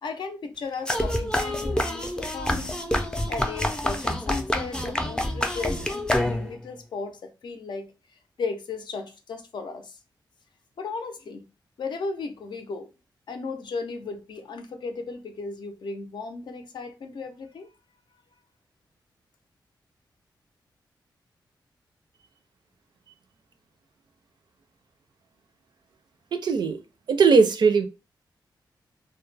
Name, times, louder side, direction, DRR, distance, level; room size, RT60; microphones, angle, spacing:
voice 1, 0.0-2.8 3.3-7.9 8.4-10.0 10.8-11.4 11.8-12.9 13.3-17.7, left 4 dB, 65° left, 0.5 m, -35 dB
sound 1, 0.9-6.7, left 1 dB, 10° left, 0.4 m, -27 dB
voice 2, 26.3-26.8 27.1-27.9, right 5 dB, 65° right, 0.4 m, -19 dB
2.2 x 2.0 x 3.1 m
wide cardioid pair, 100°, 8 cm